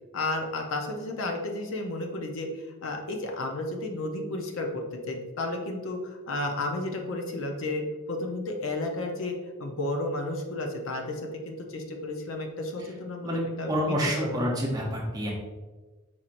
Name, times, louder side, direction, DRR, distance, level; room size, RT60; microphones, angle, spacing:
voice 1, 0.1-2.5 2.8-14.4, left 2 dB, 65° left, 2 dB, 0.6 m, -32 dB
voice 2, 13.2-15.3, equal, 15° right, -2 dB, 0.7 m, -28 dB
4.4 x 4.3 x 2.5 m, 1.3 s
head